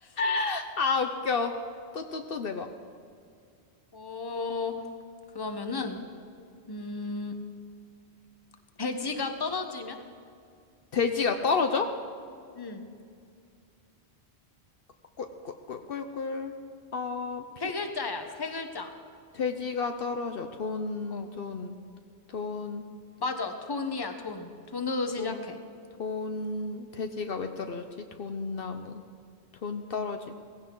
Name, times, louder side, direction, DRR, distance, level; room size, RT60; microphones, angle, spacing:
voice 1, 0.2-1.6 1.9-2.7 10.9-12.0 15.2-15.3 15.7-16.6 16.9-17.4 19.3-21.8 22.3-22.8 25.2-25.4 26.0-27.9 28.2-29.0 29.6-30.2, left 4 dB, 65° left, 6 dB, 0.9 m, -31 dB
voice 2, 3.9-4.8 5.3-6.0 6.7-7.4 8.8-10.0 12.5-12.8 17.6-18.9 21.1-21.3 23.2-25.6, left 3 dB, 25° left, 6 dB, 1.0 m, -33 dB
17.0 x 16.0 x 3.9 m, 2.3 s
omnidirectional pair, 1.1 m